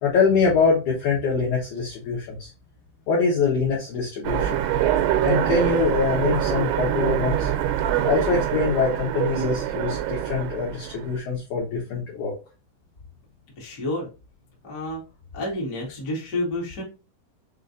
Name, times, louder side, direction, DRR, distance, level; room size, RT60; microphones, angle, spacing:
voice 1, 0.0-2.5 3.1-4.6 5.2-7.5 8.0-12.3, left 4 dB, 75° left, -3 dB, 1.8 m, -24 dB
Train, 4.2-11.2, right 11 dB, 85° right, 2.7 m, -24 dB
voice 2, 13.6-14.1 14.6-15.0 15.3-16.8, left 1 dB, 50° left, -4 dB, 1.1 m, -29 dB
6.4 x 2.5 x 2.6 m, 0.30 s
omnidirectional pair, 5.0 m